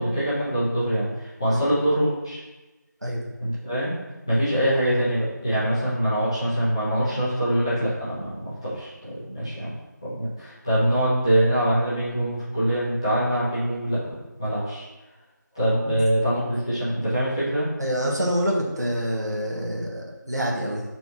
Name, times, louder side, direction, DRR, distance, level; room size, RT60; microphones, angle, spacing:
voice 1, 0.0-2.4 3.4-3.9 4.3-9.7 10.0-14.1 14.4-14.9 15.5-17.7, right 1 dB, 15° left, -12 dB, 1.2 m, -24 dB
voice 2, 17.8-20.8, equal, 60° right, -3 dB, 1.5 m, -26 dB
4.5 x 4.0 x 5.6 m, 1.1 s
figure-of-eight pair, 175°, 10 cm